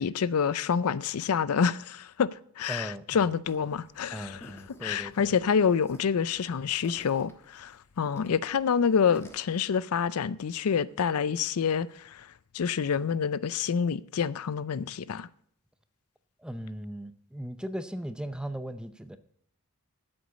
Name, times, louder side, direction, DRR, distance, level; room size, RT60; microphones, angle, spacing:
voice 1, 0.0-2.3 2.6-12.3 12.5-15.3, left 6 dB, 90° left, 0.5 m, -27 dB
voice 2, 2.7-3.3 4.1-5.3 16.4-19.2, equal, 5° right, 0.6 m, -38 dB
sound 1, 3.5-9.4, equal, 10° left, 1.2 m, -52 dB
8.2 x 7.8 x 8.1 m
head